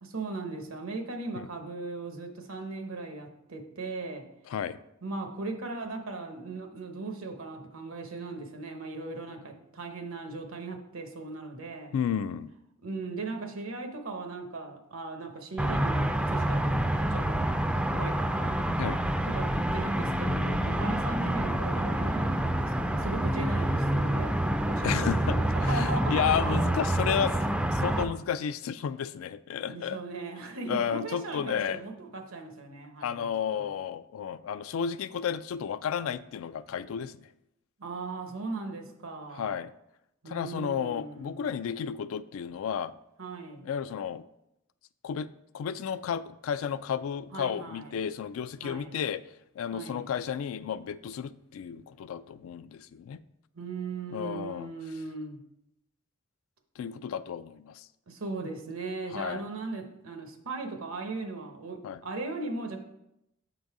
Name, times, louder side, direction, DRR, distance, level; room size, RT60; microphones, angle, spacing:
voice 1, 0.0-4.2 5.0-11.9 12.8-17.4 17.9-18.6 19.2-24.3 24.6-26.6 29.6-33.3 33.5-33.7 37.8-39.6 40.2-41.5 43.2-43.6 47.3-48.0 48.6-48.9 49.7-50.1 53.5-55.4 58.1-62.8, right 3 dB, 85° right, 4 dB, 1.0 m, -38 dB
voice 2, 4.5-4.8 11.9-12.5 18.8-19.0 24.8-27.4 27.7-30.0 30.7-31.8 33.0-37.1 39.3-39.7 40.3-42.9 43.6-44.2 45.0-45.3 45.5-49.2 49.6-53.2 54.1-54.7 56.8-57.9 59.1-59.4 61.8-62.0, left 7 dB, 75° left, 15 dB, 0.3 m, -32 dB
sound 1, 15.6-28.0, right 1 dB, 5° right, 0.3 m, -27 dB
7.1 x 3.9 x 4.7 m, 0.85 s
head